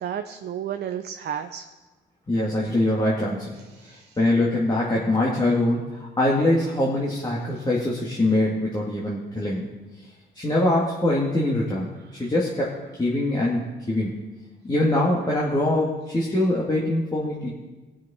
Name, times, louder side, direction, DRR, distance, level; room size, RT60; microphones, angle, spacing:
voice 1, 0.0-1.7 3.7-4.2 12.0-12.3, right 9 dB, 55° right, 7 dB, 0.6 m, -33 dB
voice 2, 2.3-3.6 4.2-9.7 10.4-11.9 12.2-12.7 13.0-14.3 14.6-17.5, left 1 dB, 20° left, -5 dB, 1.9 m, -23 dB
18.0 x 6.3 x 4.2 m, 1.2 s
cardioid pair, 90°, 20 cm